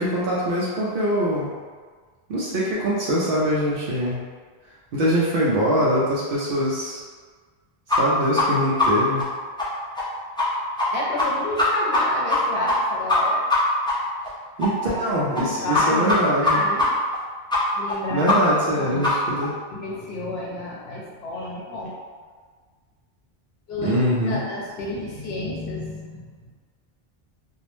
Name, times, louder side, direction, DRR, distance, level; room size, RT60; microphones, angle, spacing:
voice 1, 0.0-1.5 2.3-4.2 4.9-7.0 8.0-9.3 14.6-16.6 18.1-19.6 23.8-24.4, equal, 65° right, -6 dB, 0.7 m, -23 dB
sound 1, 7.9-8.0 8.4-8.5 8.8-8.9 9.2-9.3 9.6-9.7 10.0-10.1 10.4-10.5 10.8-10.9 11.2-11.3 11.6-12.0 12.3-12.4 12.7-12.8 13.1-13.2 13.5-13.6 13.9-14.0 14.2-14.3 14.6-14.7 15.0-15.1 15.4-15.5 15.7-16.2 16.4-16.5 16.8-16.9 17.1-17.2 17.5-17.6 17.9-18.0 18.3-18.4 18.6-18.7 19.0-19.1 19.4-19.5, left 3 dB, 10° left, 0.3 m, -21 dB
voice 2, 10.9-13.5 14.9-15.0 15.4-16.9 17.8-18.3 18.7-19.1 19.7-21.9 23.7-23.9 24.2-26.3, left 1 dB, 80° left, -3 dB, 0.9 m, -30 dB
2.5 x 2.0 x 3.0 m, 1.5 s
omnidirectional pair, 1.1 m